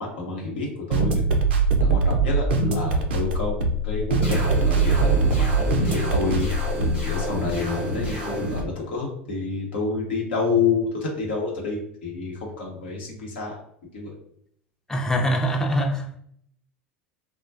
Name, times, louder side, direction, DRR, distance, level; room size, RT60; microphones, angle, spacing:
voice 1, 0.2-1.2 1.8-4.4 4.6-6.5 7.0-13.6 13.9-14.1, left 4 dB, 70° left, -2 dB, 0.8 m, -28 dB
sound 1, 0.9-7.2, right 3 dB, 65° right, 0.4 m, -22 dB
sound 2, 4.2-8.6, equal, 85° left, 1.2 m, -29 dB
voice 2, 14.9-16.1, equal, 10° left, 1 dB, 0.5 m, -23 dB
2.3 x 2.2 x 2.5 m, 0.66 s
figure-of-eight pair, 75°, 6 cm